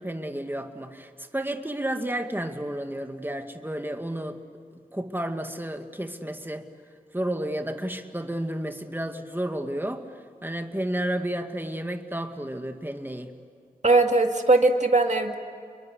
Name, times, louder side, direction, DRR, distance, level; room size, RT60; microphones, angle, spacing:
voice 1, 0.0-4.4 4.7-6.7 7.1-10.0 10.4-13.3, right 1 dB, 15° right, 5 dB, 2.2 m, -31 dB
voice 2, 13.8-15.3, right 2 dB, 50° right, 4 dB, 2.1 m, -20 dB
30.0 x 22.5 x 8.3 m, 2.2 s
wide cardioid pair, 45°, 15 cm